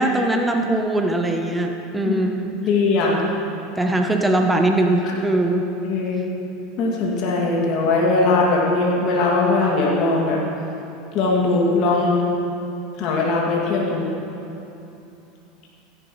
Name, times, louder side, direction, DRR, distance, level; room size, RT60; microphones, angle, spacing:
voice 1, 0.0-2.5 3.8-5.7, right 1 dB, 10° right, 3 dB, 0.9 m, -21 dB
voice 2, 2.6-3.3 5.8-6.2 6.8-10.4 11.1-12.2 13.0-14.1, left 3 dB, 55° left, -3 dB, 2.4 m, -20 dB
16.0 x 11.5 x 3.2 m, 2.9 s
hypercardioid pair, 100°, 0 cm